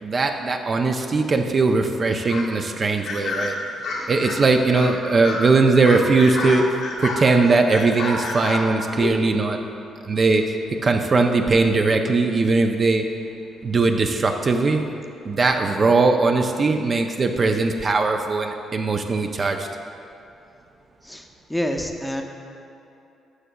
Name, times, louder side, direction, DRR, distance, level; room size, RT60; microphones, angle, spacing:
voice 1, 0.0-3.6 4.1-6.6 7.0-9.6 10.1-10.6 10.8-13.0 13.6-14.8 15.3-19.7, right 3 dB, 40° right, 4 dB, 0.4 m, -20 dB
sound 1, 2.3-2.5 3.0-4.4 4.7-5.0 5.2-5.4 5.8-7.3 7.7-9.2, left 3 dB, 80° left, 1.3 m, -29 dB
voice 2, 21.5-22.2, equal, 5° left, 3 dB, 0.6 m, -26 dB
11.0 x 6.8 x 2.3 m, 2.7 s
cardioid pair, 90°, 0 cm